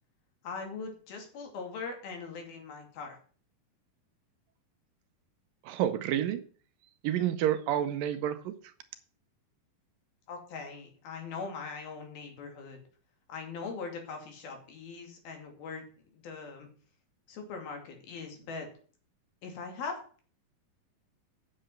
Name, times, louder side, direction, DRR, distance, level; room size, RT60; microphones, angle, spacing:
voice 1, 0.4-3.2 10.3-12.8 13.3-15.9 16.1-16.7 17.3-18.7 19.4-19.9, left 4 dB, 80° left, 3 dB, 4.4 m, -41 dB
voice 2, 5.6-6.4 7.0-8.5, right 11 dB, 75° right, 10 dB, 2.4 m, -29 dB
9.1 x 6.8 x 7.8 m, 0.43 s
omnidirectional pair, 4.2 m